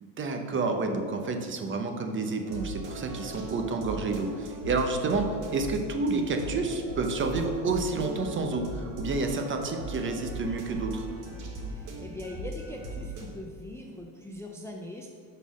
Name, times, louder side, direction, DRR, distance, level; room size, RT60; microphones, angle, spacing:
voice 1, 0.0-11.1, right 3 dB, 30° right, 5 dB, 0.7 m, -29 dB
sound 1, 2.5-13.3, right 2 dB, 55° right, 1.4 m, -39 dB
voice 2, 11.7-15.1, left 1 dB, 5° left, 0 dB, 0.4 m, -41 dB
5.4 x 4.1 x 6.1 m, 2.3 s
cardioid pair, 115°, 38 cm